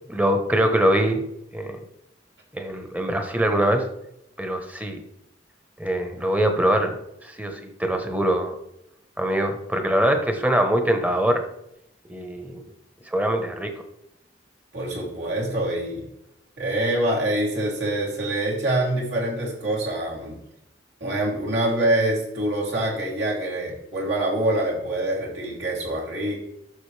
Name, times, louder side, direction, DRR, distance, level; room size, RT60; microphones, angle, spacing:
voice 1, 0.1-1.2 1.5-1.8 2.5-3.8 4.4-5.0 5.8-8.5 9.2-11.4 12.1-12.6 13.1-13.7, right 1 dB, 10° right, 5 dB, 1.1 m, -23 dB
voice 2, 14.7-16.1 16.6-20.4 21.0-26.4, right 1 dB, 70° right, -4 dB, 3.2 m, -25 dB
12.0 x 6.4 x 3.4 m, 0.82 s
head